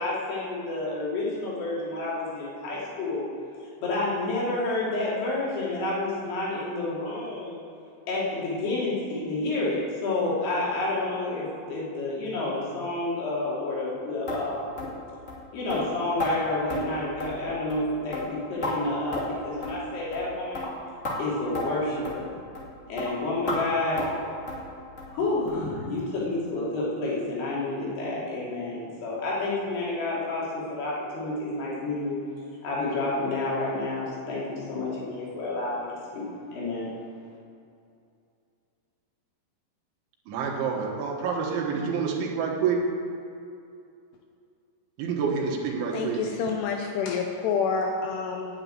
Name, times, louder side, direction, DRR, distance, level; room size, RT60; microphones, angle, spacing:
voice 1, 0.0-3.2 3.8-7.6 8.1-14.8 15.5-20.7 21.2-22.3 22.9-24.0 25.1-32.2 32.6-36.9, left 2 dB, 65° left, -6 dB, 4.8 m, -29 dB
sound 1, 14.3-14.4 14.8-14.9 15.3-15.4 15.7-15.8 16.2-16.3 16.7-16.8 17.2-17.4 17.7-17.9 18.1-18.7 19.1-19.4 19.6-19.8 20.1-20.3 20.5-20.7 21.0-21.2 21.5-21.7 22.0-22.2 22.5-22.7 23.0-23.1 23.5-23.6 24.0-24.2 24.5-24.6 25.0-25.1 25.5-25.6 26.0-26.1 26.5-26.6, left 2 dB, 30° left, 1.4 m, -32 dB
voice 2, 40.3-42.8 45.0-46.3, right 6 dB, 85° right, -1 dB, 3.9 m, -28 dB
voice 3, 45.9-48.6, left 5 dB, 80° left, 3 dB, 2.6 m, -28 dB
9.3 x 8.8 x 9.1 m, 2.5 s
omnidirectional pair, 5.3 m